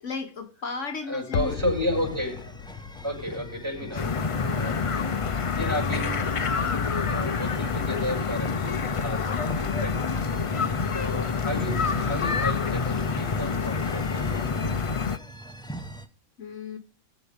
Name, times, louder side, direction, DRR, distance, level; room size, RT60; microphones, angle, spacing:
voice 1, 0.0-1.5 3.9-4.0 10.4-10.7 16.4-16.8, left 4 dB, 65° left, 1.4 m, -35 dB
voice 2, 1.1-2.7 3.0-5.2 5.5-6.3 7.1-8.8 9.0-9.9 10.9-14.5, left 1 dB, 20° right, 6.3 m, -33 dB
sound 1, 1.3-6.3 6.5-6.6, left 9 dB, 85° left, 1.2 m, -37 dB
sound 2, 1.4-16.1, right 1 dB, 5° left, 0.7 m, -42 dB
sound 3, 3.9-15.2, left 5 dB, 45° left, 0.4 m, -27 dB
20.5 x 7.2 x 3.5 m
omnidirectional pair, 1.4 m